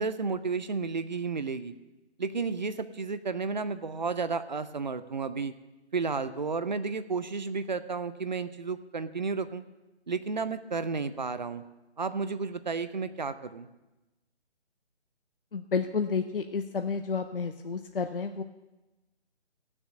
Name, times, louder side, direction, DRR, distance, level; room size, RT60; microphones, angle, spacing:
voice 1, 0.0-1.7 2.2-5.5 5.9-9.6 10.1-11.6 12.0-13.7, right 4 dB, 40° right, 12 dB, 0.6 m, -32 dB
voice 2, 15.5-18.4, left 5 dB, 55° left, 7 dB, 0.6 m, -31 dB
15.5 x 7.1 x 6.5 m, 1.1 s
figure-of-eight pair, 155°, 34 cm